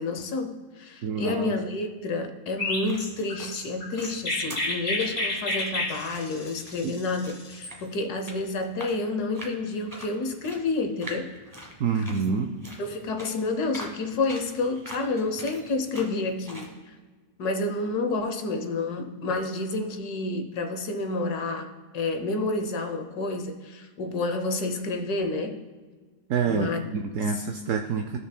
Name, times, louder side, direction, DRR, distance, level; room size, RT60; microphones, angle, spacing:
voice 1, 0.0-11.3 12.8-16.9 17.4-25.6 26.4-26.8, left 3 dB, 75° left, 6 dB, 1.4 m, -29 dB
voice 2, 1.0-1.6 6.8-7.0 11.8-12.6 26.3-28.2, right 5 dB, 70° right, 7 dB, 0.8 m, -27 dB
Chirp tweet, 2.6-7.7, left 2 dB, 50° left, 1.7 m, -31 dB
sound 1, 2.6-16.7, right 1 dB, 15° right, 1.1 m, -45 dB
16.0 x 6.3 x 2.2 m, 1.4 s
omnidirectional pair, 1.7 m